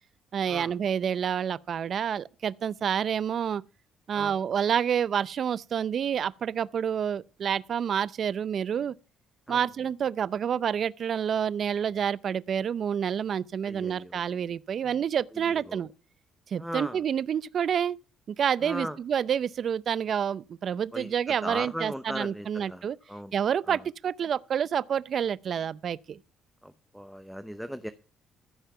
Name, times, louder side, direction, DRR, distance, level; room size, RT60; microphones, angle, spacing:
voice 1, 0.3-3.6 4.1-8.9 9.5-15.9 16.5-18.0 18.4-23.0 23.3-26.2, right 8 dB, 50° right, 0.5 m, -28 dB
voice 2, 13.6-14.2 15.5-15.9 16.6-17.0 18.6-19.0 20.9-23.4 23.7-23.8 26.6-27.9, equal, ahead, 0.7 m, -38 dB
14.5 x 5.8 x 6.8 m
cardioid pair, 110°, 0 cm